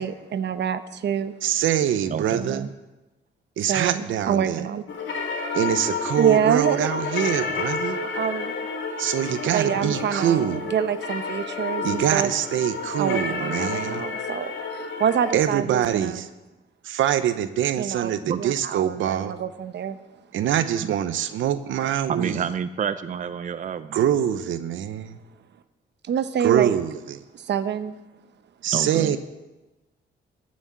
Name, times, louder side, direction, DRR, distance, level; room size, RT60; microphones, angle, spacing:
voice 1, 0.0-1.3 3.7-4.8 6.2-6.9 8.0-8.5 9.5-12.3 13.0-16.3 17.8-20.0 26.1-26.8 27.3-28.0, right 8 dB, 65° right, 12 dB, 0.9 m, -26 dB
voice 2, 1.4-2.6 3.6-4.6 5.5-8.0 9.0-10.6 11.8-14.0 15.3-16.3 16.8-19.3 20.3-22.5 23.9-25.2 26.4-27.2 28.6-29.2, right 10 dB, 85° right, 11 dB, 0.8 m, -24 dB
voice 3, 2.1-2.7 18.3-18.4 20.8-21.0 21.8-24.0 28.7-29.2, right 7 dB, 40° right, 12 dB, 0.6 m, -29 dB
sound 1, 4.9-15.3, left 4 dB, 75° left, 2.9 m, -30 dB
15.0 x 6.4 x 9.3 m, 1.1 s
cardioid pair, 95°, 20 cm